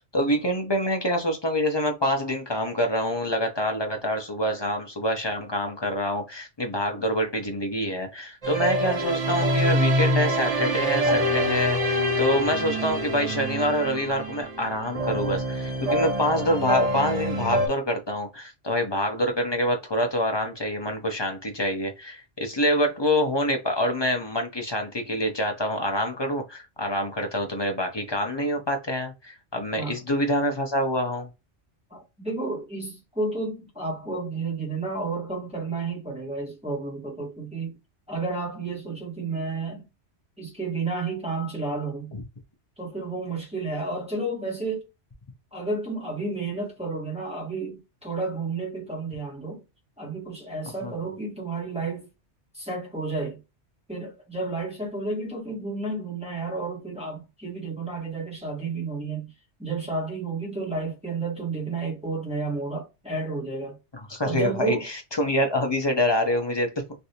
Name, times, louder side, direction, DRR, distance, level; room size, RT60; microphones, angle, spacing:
voice 1, 0.1-31.3 42.1-42.2 50.8-50.9 64.1-66.7, equal, 30° left, 0.5 m, -26 dB
sound 1, 8.4-17.7, equal, 35° right, 0.8 m, -25 dB
voice 2, 31.9-37.8 38.1-39.9 40.4-42.1 42.8-44.9 45.5-49.6 50.0-52.1 52.5-53.4 53.9-59.3 59.6-63.8 64.2-64.8, right 3 dB, 5° right, 1.2 m, -31 dB
3.3 x 2.6 x 2.8 m
omnidirectional pair, 1.2 m